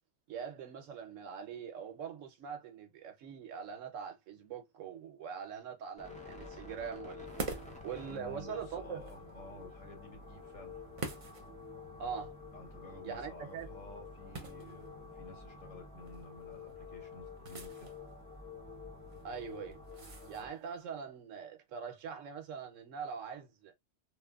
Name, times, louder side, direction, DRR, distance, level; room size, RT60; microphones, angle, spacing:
voice 1, 0.3-7.3 7.8-9.0 12.0-12.3 13.0-13.7 19.2-19.8 20.3-23.7, right 7 dB, 80° right, 1.0 m, -43 dB
sound 1, 6.0-20.5, left 4 dB, 10° left, 0.4 m, -49 dB
sound 2, 7.3-20.8, right 3 dB, 35° right, 0.6 m, -49 dB
voice 2, 8.1-10.8 12.5-17.9, left 2 dB, 90° left, 1.5 m, -52 dB
3.0 x 2.1 x 2.3 m
omnidirectional pair, 1.3 m